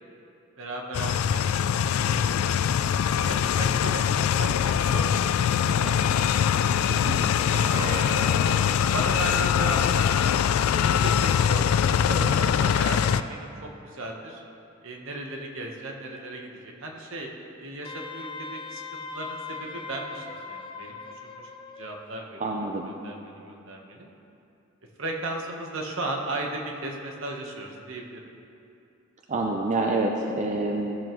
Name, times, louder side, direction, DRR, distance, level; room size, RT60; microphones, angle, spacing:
voice 1, 0.6-2.6 3.2-4.1 4.4-5.9 7.3-8.0 8.3-10.1 10.6-14.4 14.8-21.4 21.8-24.1 25.0-28.2, right 2 dB, 70° right, 1 dB, 1.1 m, -36 dB
sound 1, 0.9-13.2, left 8 dB, 90° left, 0.3 m, -23 dB
sound 2, 7.7-9.7, right 1 dB, 15° right, 1.2 m, -36 dB
Wind instrument woodwind instrument, 17.8-22.1, left 4 dB, 25° left, 0.4 m, -39 dB
voice 2, 22.4-22.9 29.3-31.0, right 2 dB, 35° right, 1 dB, 0.5 m, -27 dB
14.5 x 6.9 x 3.1 m, 2.7 s
head